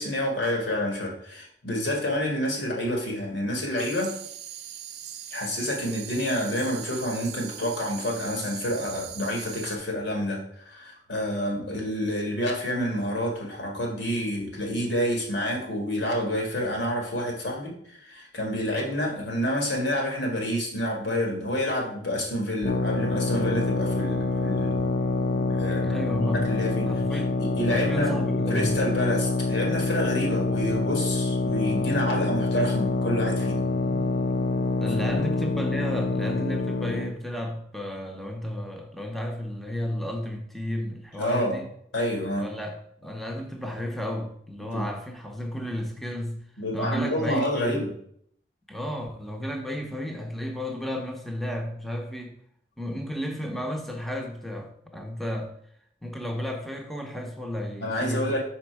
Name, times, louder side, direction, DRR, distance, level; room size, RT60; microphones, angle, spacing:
voice 1, 0.0-4.1 5.3-24.9 25.3-25.8 26.3-33.6 35.0-35.2 41.2-41.6 41.9-42.5 44.6-44.9 46.6-47.9 57.8-58.4, equal, 80° left, 1.9 m, -28 dB
sound 1, 3.8-9.8, right 10 dB, 60° right, 0.6 m, -40 dB
sound 2, 22.6-37.1, left 3 dB, 50° left, 0.7 m, -26 dB
voice 2, 25.8-26.5 26.9-27.4 27.7-28.8 34.8-41.7 42.4-46.4 46.7-47.8 48.7-52.3 52.8-55.5 56.0-58.4, equal, ahead, 0.6 m, -33 dB
5.7 x 4.3 x 4.6 m
head